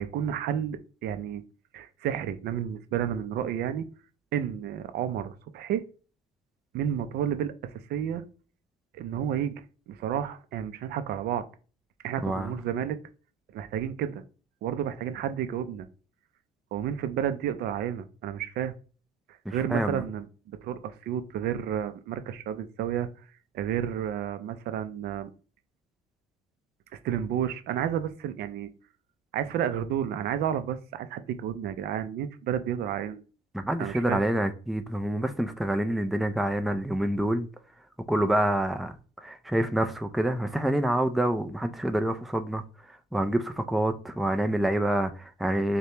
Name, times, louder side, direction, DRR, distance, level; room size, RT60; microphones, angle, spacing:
voice 1, 0.0-1.4 1.7-3.9 4.3-5.8 6.7-8.2 8.9-11.4 12.0-13.0 13.5-14.2 14.6-15.9 16.7-18.7 19.3-23.1 23.5-25.3 26.9-28.7 29.3-33.2 33.8-34.2, right 9 dB, 70° right, 0.5 m, -31 dB
voice 2, 19.5-20.0 33.5-37.5 38.1-38.9 39.2-42.6 42.9-45.8, right 1 dB, ahead, 0.4 m, -27 dB
6.5 x 2.2 x 2.9 m
cardioid pair, 110°, 17 cm